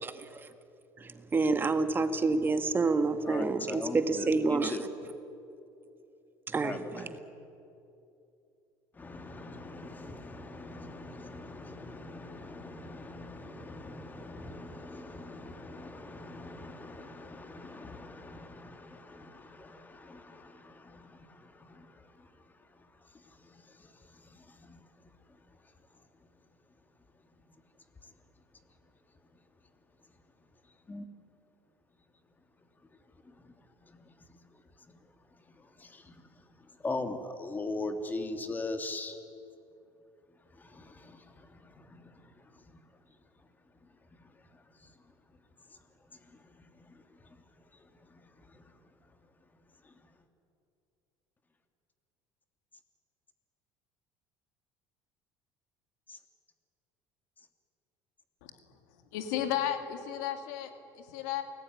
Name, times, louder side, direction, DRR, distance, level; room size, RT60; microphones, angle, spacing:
voice 1, 1.0-4.8 6.5-7.2, right 3 dB, 25° right, 8 dB, 1.8 m, -28 dB
voice 2, 3.2-4.8 6.6-7.0 9.0-21.9 24.6-24.8 30.9-31.1 35.8-36.1 36.8-39.2 40.6-41.5 41.7-42.1 48.5-48.6 56.1-56.2, left 2 dB, 20° left, 6 dB, 2.8 m, -41 dB
voice 3, 58.4-61.4, left 10 dB, 90° left, 6 dB, 2.7 m, -35 dB
28.5 x 19.5 x 9.6 m, 2.8 s
supercardioid pair, 105°, 8 cm